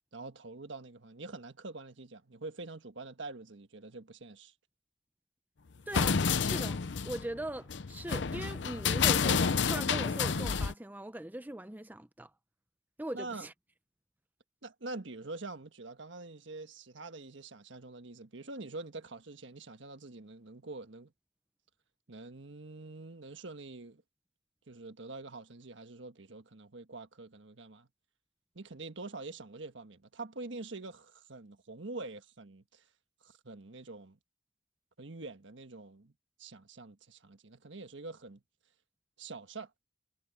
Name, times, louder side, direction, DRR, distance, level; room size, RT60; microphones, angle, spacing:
voice 1, 0.1-4.5 13.1-13.5 14.6-21.1 22.1-24.0 24.7-27.9 28.5-32.8 33.2-34.2 35.0-36.1 36.4-38.4 39.2-39.7, right 3 dB, 75° right, 1.5 m, -45 dB
sound 1, 5.9-10.7, left 6 dB, 65° left, 0.7 m, -29 dB
voice 2, 5.9-12.3 13.0-13.5, right 1 dB, 10° right, 0.6 m, -40 dB
head